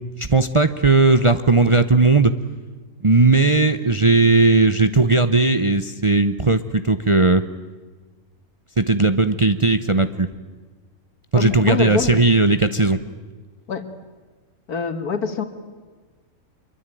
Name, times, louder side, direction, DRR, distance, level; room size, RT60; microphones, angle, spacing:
voice 1, 0.2-2.3 3.0-7.4 8.8-10.3 11.3-13.0, right 3 dB, 30° right, 10 dB, 0.6 m, -17 dB
voice 2, 11.3-12.1 13.7-13.8 14.7-15.4, left 5 dB, 85° left, 9 dB, 2.4 m, -25 dB
25.5 x 23.0 x 9.1 m, 1.4 s
omnidirectional pair, 1.6 m